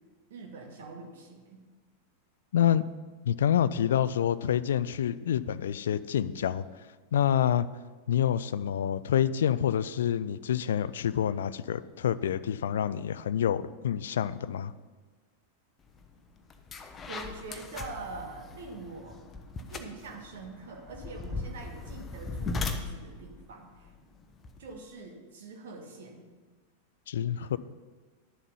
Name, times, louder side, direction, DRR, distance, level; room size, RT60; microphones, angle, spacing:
voice 1, 0.3-1.6 17.1-19.2 19.7-23.9 24.6-26.2, right 3 dB, 60° right, 3 dB, 1.6 m, -44 dB
voice 2, 2.5-2.8 3.2-6.7 7.1-7.7 8.1-14.7 27.1-27.6, left 9 dB, 60° left, 17 dB, 0.4 m, -27 dB
sound 1, 16.0-16.1 16.5-24.8, left 4 dB, 20° left, 0.9 m, -39 dB
11.0 x 7.2 x 5.5 m, 1.3 s
figure-of-eight pair, 90°, 0 cm